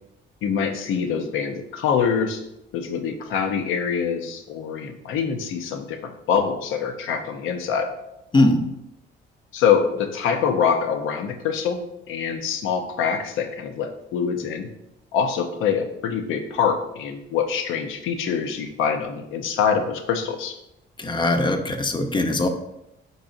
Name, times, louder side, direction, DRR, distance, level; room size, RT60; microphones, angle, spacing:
voice 1, 0.4-2.4 2.7-7.9 9.5-11.8 12.1-14.7 15.1-20.5, left 7 dB, 85° left, 5 dB, 0.6 m, -24 dB
voice 2, 8.3-8.6 21.0-22.5, left 2 dB, 25° left, 6 dB, 0.6 m, -20 dB
4.7 x 4.0 x 2.5 m, 0.85 s
cardioid pair, 90°, 20 cm